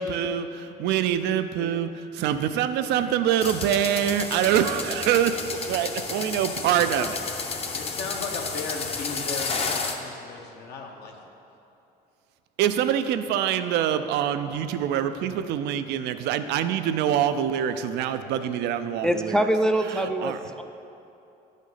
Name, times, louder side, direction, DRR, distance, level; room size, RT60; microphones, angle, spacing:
voice 1, 0.0-7.2 12.6-19.5 19.9-20.4, right 9 dB, 85° right, 11 dB, 0.4 m, -25 dB
sound 1, 3.4-9.9, left 4 dB, 35° left, 0.6 m, -31 dB
voice 2, 7.7-11.3, left 4 dB, 75° left, 1 dB, 1.0 m, -36 dB
voice 3, 19.0-20.6, right 1 dB, 5° left, 6 dB, 0.3 m, -24 dB
10.0 x 5.1 x 4.1 m, 2.8 s
cardioid pair, 110°, 17 cm